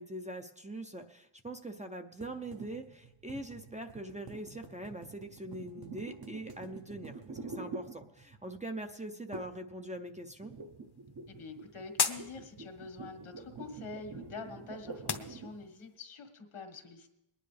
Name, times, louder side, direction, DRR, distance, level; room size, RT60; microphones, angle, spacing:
voice 1, 0.0-10.5, right 1 dB, 15° right, 5 dB, 0.6 m, -43 dB
sound 1, 2.2-8.5 9.3-9.7 10.0-15.7, right 3 dB, 45° right, 1.0 m, -47 dB
sound 2, 10.5-16.0, left 6 dB, 50° left, 0.9 m, -40 dB
voice 2, 11.3-17.1, left 3 dB, 80° left, 5 dB, 1.8 m, -46 dB
22.5 x 10.0 x 3.3 m, 0.87 s
wide cardioid pair, 140°, 50 cm